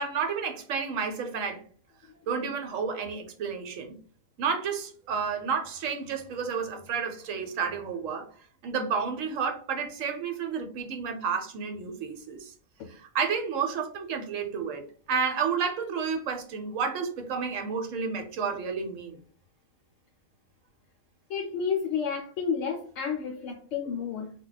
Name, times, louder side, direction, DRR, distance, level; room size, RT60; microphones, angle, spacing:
voice 1, 0.0-1.6 2.3-4.0 4.4-8.3 8.6-12.5 12.9-19.2, right 6 dB, 75° right, 4 dB, 1.0 m, -31 dB
voice 2, 21.3-24.3, left 6 dB, 70° left, 1 dB, 0.9 m, -31 dB
2.3 x 2.2 x 3.8 m, 0.42 s
omnidirectional pair, 1.4 m